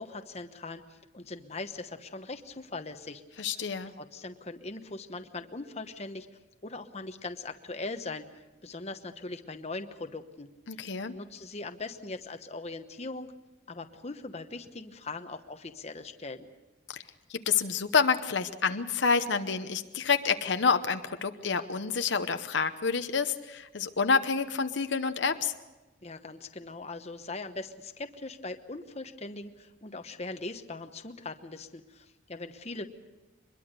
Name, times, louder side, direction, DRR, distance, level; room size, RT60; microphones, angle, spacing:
voice 1, 0.0-3.6 3.9-6.3 6.6-8.3 8.6-10.5 11.1-13.3 13.7-16.5 26.0-32.9, left 3 dB, 35° left, 7 dB, 1.0 m, -40 dB
voice 2, 3.4-3.9 10.7-11.2 16.9-17.0 17.3-25.5, left 5 dB, 65° left, 8 dB, 0.9 m, -28 dB
24.0 x 21.5 x 6.7 m, 1.1 s
head